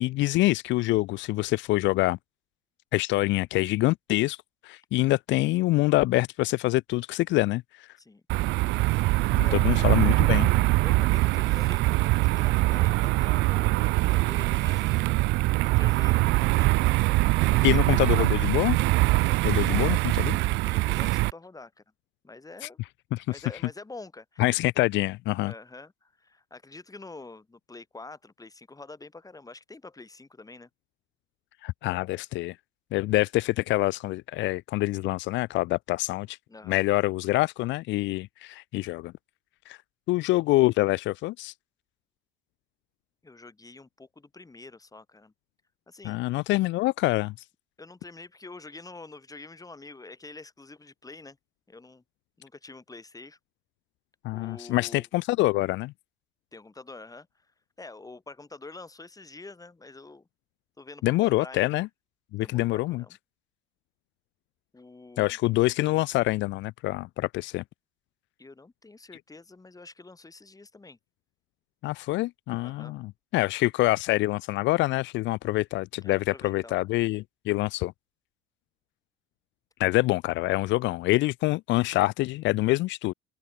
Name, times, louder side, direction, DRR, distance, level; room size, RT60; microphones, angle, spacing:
voice 1, 0.0-2.2 2.9-4.4 4.6-7.9 9.3-10.5 17.6-18.8 19.4-20.0 20.2-20.4 22.6-22.7 23.1-23.2 24.4-25.5 31.6-32.5 32.9-36.4 36.7-39.1 39.7-39.8 40.1-41.5 46.0-47.3 54.2-55.9 61.0-61.9 62.3-63.0 65.2-67.6 71.8-77.9 79.8-83.1, left 19 dB, 65° left, 1.4 m, -25 dB
sound 1, 8.3-21.3, right 21 dB, 60° right, 0.4 m, -23 dB
voice 2, 9.4-9.9 10.8-15.3 15.6-16.9 17.5-18.3 19.6-20.0 20.6-21.7 22.2-22.8 23.3-24.5 25.4-30.7 36.5-36.8 43.2-45.3 45.9-46.2 47.8-51.4 51.7-52.0 52.4-53.4 54.3-55.1 56.5-57.5 57.8-60.3 60.8-61.6 62.4-63.2 64.7-65.4 68.4-71.0 72.6-72.9 76.0-76.8, left 3 dB, 15° left, 7.3 m, -46 dB
open air
supercardioid pair, 80°, 20 cm